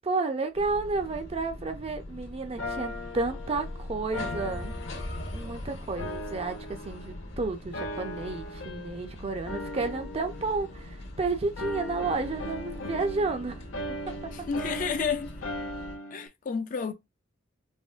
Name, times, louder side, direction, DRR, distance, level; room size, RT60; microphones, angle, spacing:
voice 1, 0.0-4.8 5.3-13.6 14.1-14.2, right 3 dB, 30° right, 0.5 m, -31 dB
sound 1, 0.5-15.9, left 1 dB, 70° left, 1.3 m, -42 dB
sound 2, 2.6-5.5 6.0-7.3 7.7-9.1 9.5-11.2 11.6-16.3, left 1 dB, 90° left, 0.6 m, -39 dB
voice 2, 14.3-15.3 16.1-16.9, left 6 dB, 45° left, 0.4 m, -31 dB
4.9 x 2.1 x 2.5 m
head